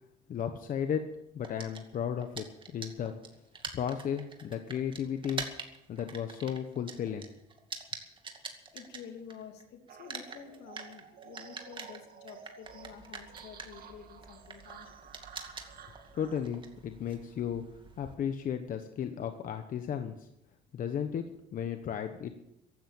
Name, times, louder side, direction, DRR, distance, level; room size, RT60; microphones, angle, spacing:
voice 1, 0.3-2.5 2.7-3.2 3.7-5.5 5.9-7.3 16.1-17.6 18.0-20.3 20.7-22.3, left 8 dB, 55° left, 7 dB, 1.2 m, -34 dB
sound 1, 1.4-9.6 9.9-18.1, right 4 dB, 30° right, 2.3 m, -45 dB
voice 2, 8.7-15.2, left 7 dB, 80° left, 5 dB, 2.8 m, -49 dB
sound 2, 9.9-16.5, right 7 dB, 60° right, 2.3 m, -52 dB
15.5 x 12.0 x 7.2 m, 0.85 s
cardioid pair, 110°, 17 cm